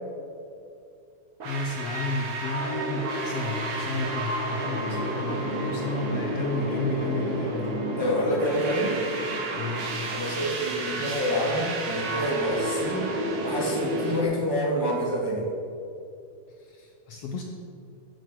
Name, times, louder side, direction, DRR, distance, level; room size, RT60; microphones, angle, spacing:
voice 1, 1.4-7.8 9.5-10.0 16.6-17.4, left 2 dB, 70° left, 1 dB, 1.5 m, -32 dB
sound 1, 1.4-14.2, right 1 dB, 50° right, 2.2 m, -31 dB
voice 2, 7.9-9.0 10.1-13.1 13.4-15.5, equal, 15° right, -2 dB, 0.7 m, -27 dB
9.1 x 8.5 x 7.5 m, 2.5 s
omnidirectional pair, 3.8 m